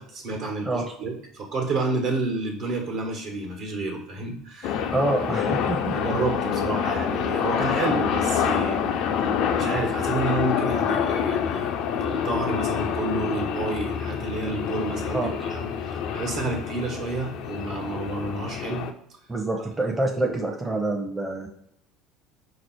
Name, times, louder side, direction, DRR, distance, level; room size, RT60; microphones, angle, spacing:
voice 1, 0.0-4.9 5.5-8.9 9.5-18.9 20.2-20.3, right 3 dB, 55° right, 2 dB, 1.2 m, -30 dB
sound 1, 4.6-18.9, left 7 dB, 60° left, 0.4 m, -27 dB
voice 2, 4.9-5.9 15.1-15.4 19.3-21.5, right 2 dB, 15° right, 0 dB, 0.7 m, -26 dB
4.9 x 2.0 x 4.5 m, 0.72 s
hypercardioid pair, 65°, 0 cm